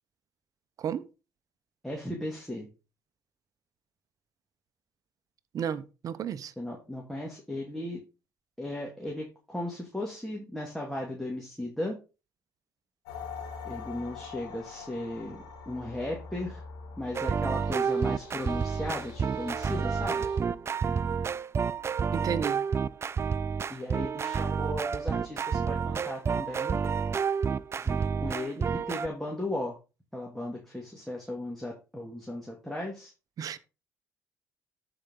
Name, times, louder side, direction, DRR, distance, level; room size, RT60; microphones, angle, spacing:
voice 1, 1.8-2.7 6.6-8.0 8.6-12.0 13.6-16.6 17.0-20.3 23.7-26.8 27.8-29.8 30.1-33.1, left 1 dB, 5° left, 2.6 m, -36 dB
voice 2, 5.5-6.5 22.1-22.6 33.4-33.6, right 8 dB, 55° right, 0.9 m, -32 dB
sound 1, 13.0-20.4, left 5 dB, 85° left, 2.4 m, -44 dB
sound 2, 17.1-29.1, right 6 dB, 40° right, 0.5 m, -29 dB
13.0 x 5.0 x 3.9 m
supercardioid pair, 60°, 7 cm